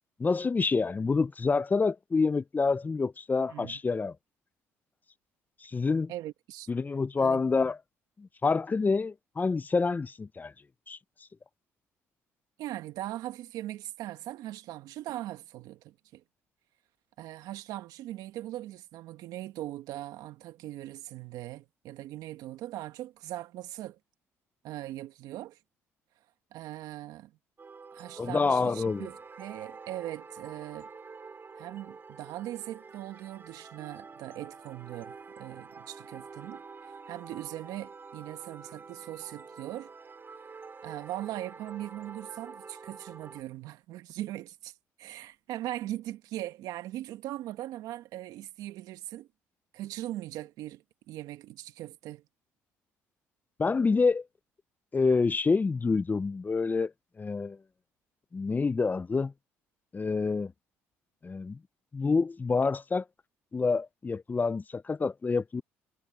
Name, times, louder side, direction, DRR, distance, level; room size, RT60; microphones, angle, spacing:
voice 1, 0.2-4.1 5.6-6.1 6.7-7.8 8.2-10.5 10.9-11.0 28.2-29.1 53.6-54.2 54.9-56.9 57.2-57.6 58.3-59.3 59.9-60.5 61.2-61.6 61.9-63.0 63.5-65.6, left 4 dB, 25° left, 0.7 m, -27 dB
voice 2, 3.5-3.8 6.1-6.7 7.2-7.5 12.6-16.2 17.2-24.0 24.6-25.6 26.5-27.3 27.9-30.9 31.6-36.6 37.1-39.9 40.8-49.3 49.7-52.2, right 14 dB, 75° right, 1.8 m, -40 dB
sound 1, 27.6-43.4, right 4 dB, 35° right, 7.2 m, -47 dB
supercardioid pair, 70°, 6 cm